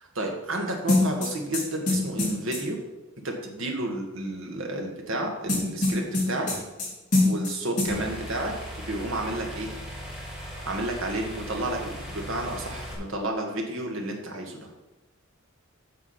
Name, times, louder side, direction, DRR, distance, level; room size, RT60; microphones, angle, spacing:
voice 1, 0.2-2.8 3.2-6.5 7.2-8.5 8.9-9.7 10.6-14.7, right 1 dB, 70° right, 1 dB, 1.7 m, -31 dB
sound 1, 0.9-2.6 5.5-6.9 7.1-7.5 7.8-7.9, left 2 dB, 35° left, 3.7 m, -23 dB
sound 2, 7.9-12.9, equal, 5° right, 1.9 m, -38 dB
8.4 x 6.2 x 5.8 m, 1.1 s
head